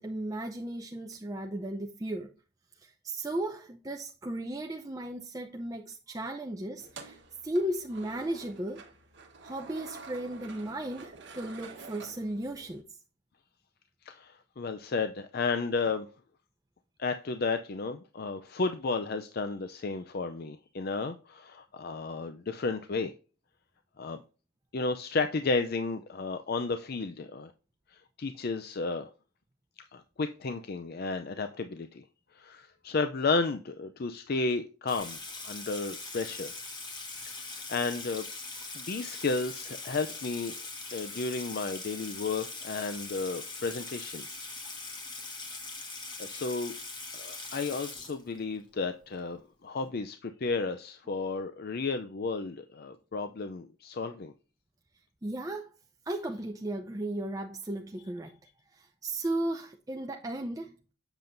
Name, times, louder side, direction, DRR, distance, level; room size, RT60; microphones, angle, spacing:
voice 1, 0.0-2.3 2.8-7.2 7.4-8.8 9.4-13.0 55.2-55.7 56.1-58.3 58.7-60.7, right 1 dB, 15° right, 0.5 m, -35 dB
sound 1, 6.8-12.8, right 3 dB, 55° right, 1.2 m, -49 dB
voice 2, 14.0-16.1 17.0-23.1 24.0-24.2 24.7-27.5 27.9-29.1 29.9-32.0 32.3-36.5 37.5-38.3 38.7-40.5 40.9-44.3 46.2-46.7 47.1-54.3, left 4 dB, 45° left, 0.5 m, -33 dB
Water tap faucet / Sink (filling or washing), 34.9-48.6, left 3 dB, 20° left, 1.5 m, -41 dB
7.8 x 6.9 x 2.6 m
head